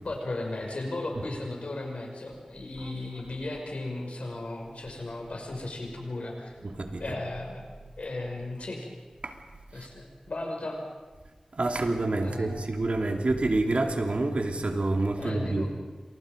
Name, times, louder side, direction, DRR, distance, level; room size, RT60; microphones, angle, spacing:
voice 1, 0.0-6.6 7.0-7.7 8.0-8.9 9.7-10.8 12.2-12.7 15.2-15.7, left 2 dB, 90° left, 1 dB, 6.2 m, -36 dB
voice 2, 6.6-7.2 9.2-9.4 9.7-9.9 11.5-15.7, right 2 dB, 80° right, 3 dB, 2.9 m, -28 dB
29.0 x 27.0 x 5.3 m, 1.3 s
wide cardioid pair, 45°, 2 cm